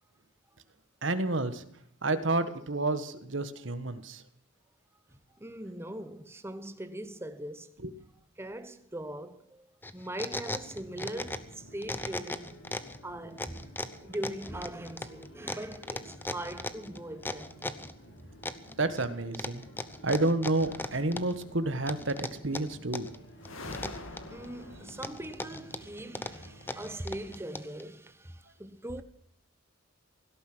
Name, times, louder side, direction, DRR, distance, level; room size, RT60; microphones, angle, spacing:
voice 1, 1.0-1.6 2.0-4.2 18.8-19.6 20.0-23.1, right 2 dB, 65° right, 1.5 m, -30 dB
voice 2, 5.4-7.7 8.4-9.7 9.9-12.6 13.0-13.7 14.0-17.8 24.3-29.0, right 1 dB, 10° right, 1.1 m, -41 dB
sound 1, 9.8-11.5 11.8-13.0 13.4-17.9 18.4-19.1 19.3-21.4 21.9-23.2 23.4-24.5 24.9-27.8, left 2 dB, 10° left, 0.8 m, -37 dB
sound 2, 10.6-27.4, equal, 65° left, 4.6 m, -53 dB
sound 3, 20.6-21.8 23.4-26.3, left 2 dB, 85° left, 2.7 m, -46 dB
17.5 x 12.5 x 6.2 m
head